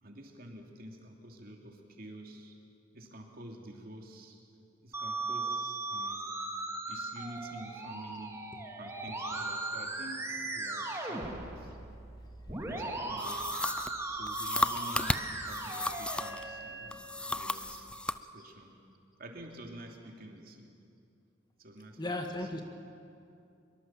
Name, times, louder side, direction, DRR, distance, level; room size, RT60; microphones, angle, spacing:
voice 1, 0.0-2.6 2.9-4.4 4.8-6.3 6.9-8.4 8.7-11.7 12.5-13.5 14.1-17.0 17.3-17.9 18.3-18.8 19.2-20.8 21.6-22.6, right 1 dB, 50° right, 2 dB, 3.0 m, -48 dB
Musical instrument, 4.9-16.9, right 2 dB, 15° right, 2.4 m, -38 dB
sound 1, 13.2-16.5 16.9-18.2, left 1 dB, 5° left, 0.5 m, -34 dB
voice 2, 22.0-22.6, left 2 dB, 25° left, 4 dB, 1.6 m, -35 dB
24.0 x 23.0 x 7.6 m, 2.5 s
head